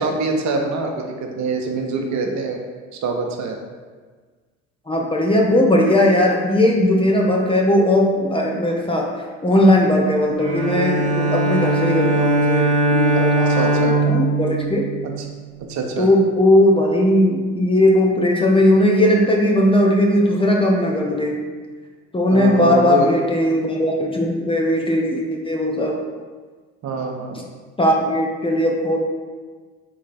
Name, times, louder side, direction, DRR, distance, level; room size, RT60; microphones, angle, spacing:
voice 1, 0.0-2.6 3.0-3.6 13.1-14.0 15.0-15.1 15.7-16.1 22.3-23.1 26.8-27.4, right 4 dB, 50° right, 2 dB, 0.8 m, -24 dB
voice 2, 4.9-9.1 9.4-14.9 16.0-21.4 22.1-26.0 27.8-29.0, left 1 dB, 15° left, -1 dB, 0.6 m, -18 dB
Bowed string instrument, 10.4-15.6, right 1 dB, 20° right, 0.8 m, -20 dB
4.1 x 3.1 x 4.0 m, 1.5 s
hypercardioid pair, 70°, 38 cm